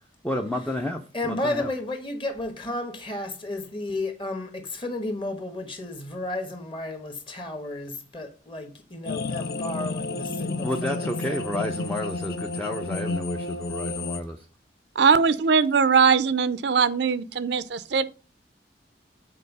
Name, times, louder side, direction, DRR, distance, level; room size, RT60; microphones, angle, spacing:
voice 1, 0.2-1.7 10.6-14.4, left 1 dB, 5° left, 0.5 m, -31 dB
voice 2, 1.1-11.4, left 2 dB, 30° left, 1.3 m, -33 dB
sound 1, 9.0-14.2, left 3 dB, 55° left, 0.5 m, -31 dB
voice 3, 15.0-18.1, right 5 dB, 70° right, 0.5 m, -21 dB
6.6 x 4.4 x 5.3 m
head